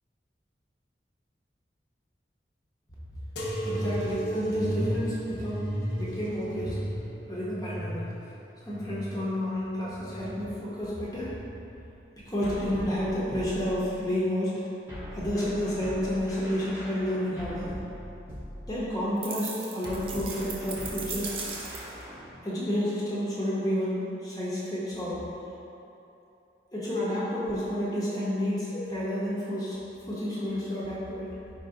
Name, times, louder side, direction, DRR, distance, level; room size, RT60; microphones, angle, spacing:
sound 1, 3.4-10.6 11.1-11.9 12.6-13.2 14.1-14.2, right 1 dB, 80° left, 0.7 m, -34 dB
voice 1, 3.6-6.8 7.3-8.0 8.6-11.4 12.3-14.6 15.1-17.7 18.7-21.3 22.4-25.2 26.7-29.8 30.1-31.4, equal, 20° left, -8 dB, 0.6 m, -30 dB
sound 2, 12.4-14.1 14.9-19.1 19.8-22.3, equal, 15° right, 0.8 m, -41 dB
sound 3, 19.2-22.0, right 5 dB, 30° right, 0.4 m, -38 dB
5.0 x 2.6 x 3.8 m, 2.8 s
head